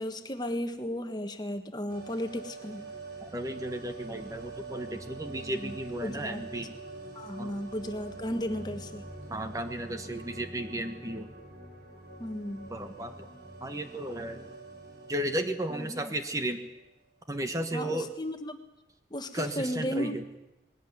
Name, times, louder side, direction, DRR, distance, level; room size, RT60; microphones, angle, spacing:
voice 1, 0.0-2.9 5.3-5.7 6.0-6.5 7.1-9.0 12.2-12.7 15.7-16.1 17.7-18.6 19.1-20.2, equal, 25° left, 7 dB, 1.5 m, -35 dB
sound 1, 1.9-16.8 17.0-17.1, right 2 dB, 70° right, 6.5 m, -45 dB
voice 2, 3.2-6.7 7.4-7.5 9.3-11.3 12.7-13.3 13.6-14.5 15.1-16.6 17.3-18.1 19.3-20.2, right 1 dB, 20° right, 6 dB, 1.3 m, -34 dB
21.0 x 17.5 x 9.5 m, 0.95 s
head